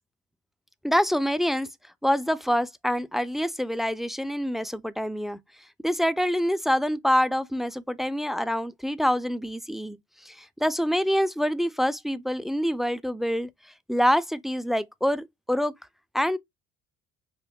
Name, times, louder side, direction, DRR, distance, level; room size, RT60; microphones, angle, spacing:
voice 1, 0.8-1.7 2.0-5.4 5.8-10.0 10.2-13.5 13.9-15.7 16.1-16.4, equal, ahead, 0.3 m, -26 dB
4.4 x 2.5 x 2.2 m
supercardioid pair, 60°, 35 cm